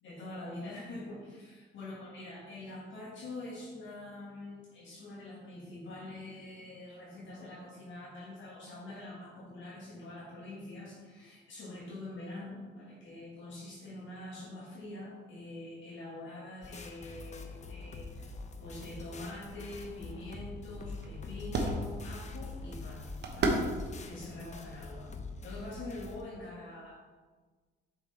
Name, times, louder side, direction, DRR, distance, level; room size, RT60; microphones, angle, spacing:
voice 1, 0.0-18.3 18.6-25.1 25.4-27.0, left 2 dB, 70° left, -5 dB, 1.6 m, -45 dB
sound 1, 16.6-26.2, left 3 dB, 35° left, 0.7 m, -45 dB
sound 2, 19.4-25.7, right 2 dB, 60° right, 1.1 m, -37 dB
6.4 x 5.0 x 3.9 m, 1.4 s
cardioid pair, 90°, 20 cm